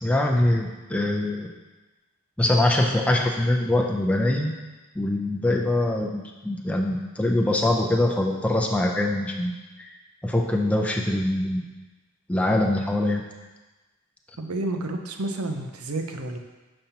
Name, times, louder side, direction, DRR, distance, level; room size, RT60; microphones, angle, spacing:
voice 1, 0.0-1.5 2.4-4.5 4.9-9.9 10.2-11.6 12.3-13.2, left 1 dB, 5° left, 0 dB, 0.4 m, -23 dB
voice 2, 14.4-16.4, right 2 dB, 80° right, 5 dB, 0.6 m, -30 dB
7.0 x 5.3 x 2.8 m, 1.2 s
head